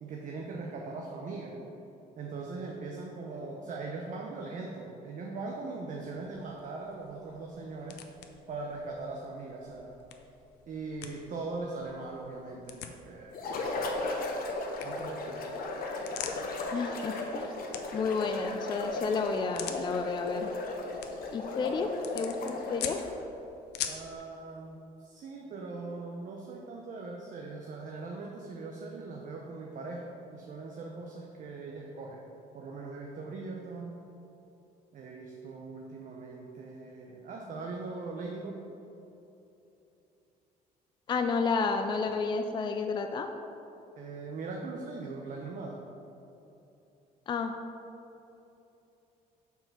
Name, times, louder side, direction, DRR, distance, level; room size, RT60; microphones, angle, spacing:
voice 1, 0.0-1.6 2.2-8.0 8.5-10.0 10.7-13.7 14.8-15.5 23.9-32.2 32.5-34.0 34.9-38.6 44.0-45.8, right 3 dB, 50° right, 0 dB, 0.7 m, -40 dB
sound 1, 6.0-24.2, left 9 dB, 80° left, 0.6 m, -46 dB
sound 2, 13.3-23.2, left 2 dB, 60° left, 0.9 m, -36 dB
voice 2, 16.7-17.5 17.9-20.5 21.3-23.0 41.1-43.3 47.3-47.5, left 4 dB, 25° left, 5 dB, 0.4 m, -31 dB
5.5 x 4.4 x 5.8 m, 2.9 s
cardioid pair, 110°, 17 cm